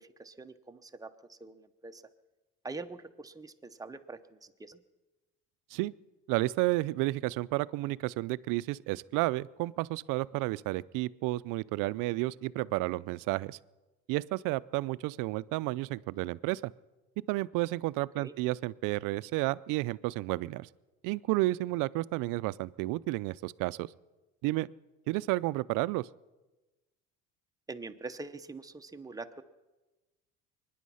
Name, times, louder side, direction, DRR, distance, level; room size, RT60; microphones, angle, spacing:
voice 1, 0.0-2.0 2.6-4.8 18.1-18.3 27.7-29.4, right 3 dB, 10° right, 7 dB, 0.8 m, -44 dB
voice 2, 6.3-13.6 14.1-16.6 17.3-20.7 21.0-23.9 24.4-24.7 25.1-26.1, right 20 dB, 75° right, 19 dB, 0.5 m, -31 dB
23.5 x 10.0 x 5.6 m, 1.1 s
cardioid pair, 110°, 32 cm